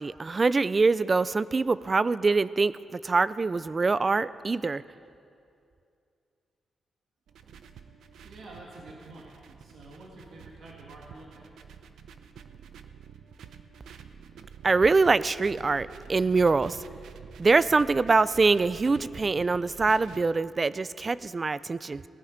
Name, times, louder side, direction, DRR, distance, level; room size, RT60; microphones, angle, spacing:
voice 1, 0.0-4.8 14.6-16.8 17.4-22.0, right 4 dB, 30° right, 17 dB, 0.3 m, -24 dB
sound 1, 7.3-20.2, right 7 dB, 85° right, 0.7 m, -48 dB
voice 2, 8.2-11.5, right 2 dB, 65° right, -3 dB, 2.0 m, -48 dB
18.5 x 11.5 x 5.1 m, 2.5 s
cardioid pair, 125°, 0 cm